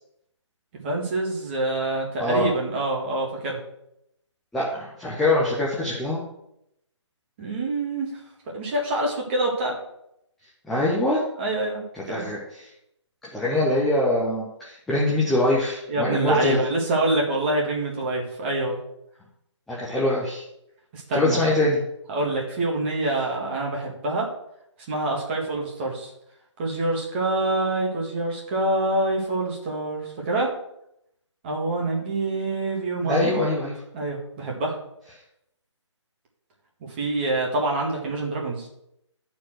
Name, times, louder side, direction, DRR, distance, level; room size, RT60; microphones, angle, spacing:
voice 1, 0.8-3.6 7.4-8.1 8.5-9.8 11.4-12.3 15.9-18.8 20.9-21.4 22.1-24.3 24.9-26.1 26.6-30.5 31.4-33.5 33.9-34.8 37.0-38.7, right 2 dB, 20° right, -2 dB, 2.0 m, -26 dB
voice 2, 2.2-2.5 4.5-6.2 10.6-11.2 11.9-12.7 13.3-16.6 19.7-20.4 21.1-21.8 33.0-33.8, left 1 dB, ahead, -6 dB, 0.5 m, -23 dB
11.0 x 4.6 x 6.2 m, 0.79 s
figure-of-eight pair, 160°, 16 cm